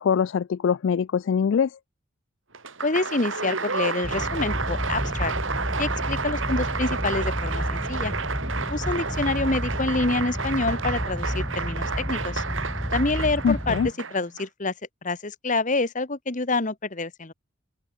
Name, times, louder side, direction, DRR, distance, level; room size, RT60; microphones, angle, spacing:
voice 1, 0.0-1.7 13.4-13.9, left 6 dB, 60° left, 0.3 m, -23 dB
Applause, 2.5-14.4, right 4 dB, 70° right, 3.5 m, -31 dB
voice 2, 2.8-5.3 5.8-8.1 8.7-12.4 12.9-13.8 14.1-14.7 15.0-17.3, left 2 dB, 40° left, 1.5 m, -27 dB
sound 1, 4.0-13.9, equal, 10° left, 2.7 m, -31 dB
open air
head